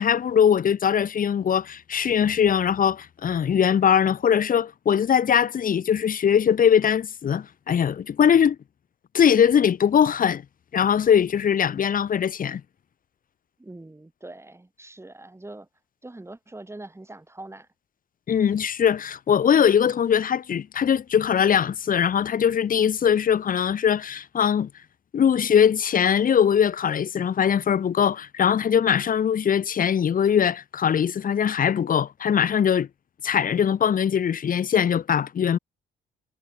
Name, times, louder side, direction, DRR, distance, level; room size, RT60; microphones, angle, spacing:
voice 1, 0.0-8.6 9.1-10.4 10.7-12.6 18.3-24.7 25.1-32.9 33.2-35.6, left 8 dB, 45° left, 0.9 m, -21 dB
voice 2, 13.6-15.7 16.0-17.7, right 2 dB, 15° right, 7.2 m, -42 dB
cardioid pair, 90°, 20 cm